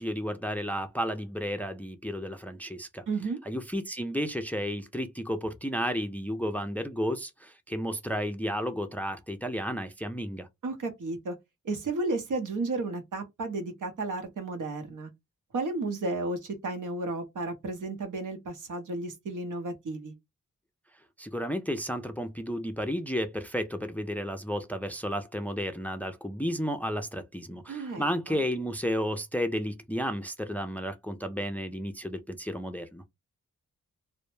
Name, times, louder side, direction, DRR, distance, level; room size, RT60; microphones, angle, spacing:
voice 1, 0.0-3.0 3.5-10.5 21.2-33.0, equal, 5° left, 0.4 m, -32 dB
voice 2, 3.1-3.4 10.6-11.4 11.6-15.1 15.5-20.1 27.7-28.4, right 3 dB, 70° right, 0.8 m, -33 dB
2.1 x 2.1 x 3.1 m
cardioid pair, 50°, 32 cm